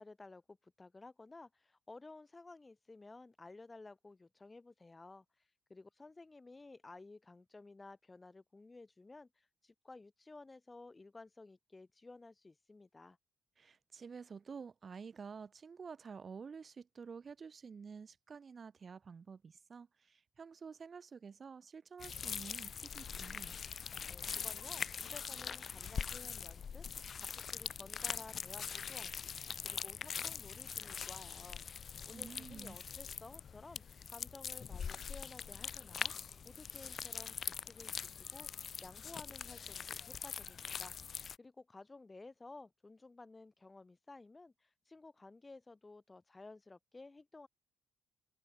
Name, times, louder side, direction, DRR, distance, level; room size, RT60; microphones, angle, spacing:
voice 1, 0.0-5.3 5.7-13.2 24.1-26.9 27.2-29.3 29.6-31.8 32.1-33.8 34.1-36.1 36.4-41.0 41.4-47.5, left 3 dB, 20° left, 5.2 m, -55 dB
voice 2, 13.6-23.6 32.1-32.8, right 5 dB, 40° right, 2.9 m, -50 dB
sound 1, 22.0-41.4, left 7 dB, 50° left, 0.5 m, -43 dB
cardioid pair, 90°, 0 cm